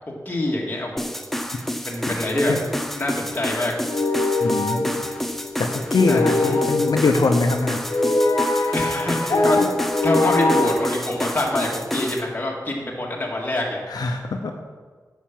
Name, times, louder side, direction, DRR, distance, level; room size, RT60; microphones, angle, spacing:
voice 1, 0.0-1.2 1.9-2.5 2.9-3.7 6.1-6.6 8.7-9.6 10.0-13.8, left 1 dB, 25° left, -2 dB, 2.1 m, -25 dB
sound 1, 1.0-12.3, equal, 5° left, 0.7 m, -30 dB
sound 2, 2.7-10.7, left 2 dB, 55° left, 1.0 m, -23 dB
voice 2, 4.4-4.9 5.6-7.8 9.6-9.7 13.9-14.5, left 3 dB, 85° left, 3 dB, 0.9 m, -22 dB
9.3 x 5.8 x 7.5 m, 1.5 s
wide cardioid pair, 115°, 7 cm